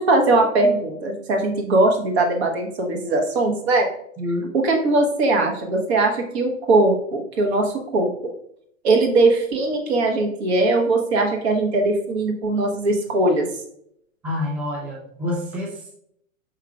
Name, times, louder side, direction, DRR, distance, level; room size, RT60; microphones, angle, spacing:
voice 1, 0.0-3.9 4.5-8.1 8.8-13.5, right 2 dB, 50° right, 2 dB, 1.1 m, -20 dB
voice 2, 4.2-4.5 14.2-15.9, left 1 dB, 5° right, -3 dB, 0.5 m, -27 dB
4.8 x 4.6 x 2.3 m, 0.71 s
figure-of-eight pair, 100°, 40 cm